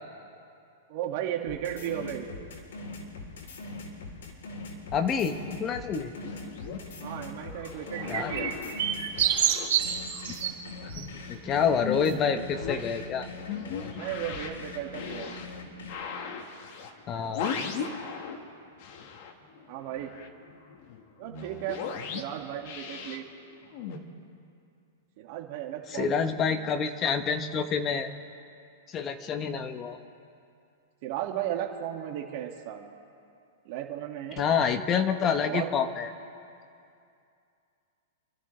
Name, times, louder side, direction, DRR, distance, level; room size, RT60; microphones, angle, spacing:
voice 1, 0.9-2.3 7.0-8.6 13.9-15.4 19.7-20.1 21.2-21.8 22.1-23.2 25.2-26.2 26.5-26.7 31.0-32.9 33.7-34.5 35.4-35.7, right 11 dB, 45° right, 1 dB, 2.0 m, -35 dB
sound 1, 1.5-9.3 9.8-15.9, left 3 dB, 80° left, 3.6 m, -41 dB
voice 2, 4.9-6.1 8.1-8.3 11.0-13.3 17.1-17.5 25.9-28.1 28.9-30.0 34.4-36.1, left 6 dB, 20° left, 8 dB, 1.0 m, -28 dB
sound 2, 5.9-10.6 10.9-18.5 18.8-24.0, left 6 dB, 45° left, 1.6 m, -38 dB
sound 3, 7.9-10.5 10.9-11.0, right 10 dB, 70° right, 3.6 m, -27 dB
28.5 x 13.5 x 3.3 m, 2.5 s
supercardioid pair, 160°, 0 cm